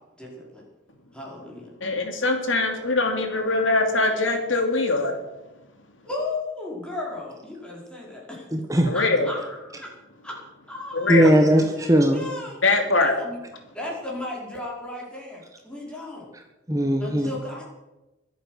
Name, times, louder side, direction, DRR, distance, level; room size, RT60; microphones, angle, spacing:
voice 1, 0.2-0.6 1.1-1.7 6.0-8.3 8.9-9.9 10.2-10.4 10.7-11.3 11.7-13.4 13.7-16.3 17.0-17.6, left 2 dB, 5° left, -4 dB, 4.8 m, -35 dB
voice 2, 1.8-5.1 8.9-9.3 10.9-11.3 12.6-13.1, left 3 dB, 80° left, 4 dB, 2.7 m, -22 dB
voice 3, 8.5-8.9 11.1-12.2 16.7-17.3, right 1 dB, 15° right, 3 dB, 1.2 m, -19 dB
23.0 x 8.5 x 6.4 m, 1.0 s
head